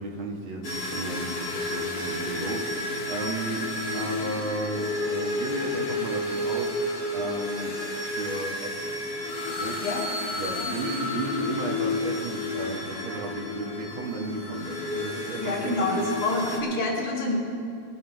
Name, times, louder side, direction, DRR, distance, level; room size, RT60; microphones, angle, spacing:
voice 1, 0.0-3.7 3.9-7.8 8.1-8.9 9.6-10.0 10.3-16.1, right 2 dB, 50° right, -1 dB, 1.8 m, -34 dB
sound 1, 0.6-16.6, left 2 dB, 45° left, 1.3 m, -31 dB
voice 2, 15.4-17.4, left 2 dB, 75° left, -3 dB, 3.6 m, -27 dB
19.5 x 9.2 x 4.5 m, 2.5 s
omnidirectional pair, 3.5 m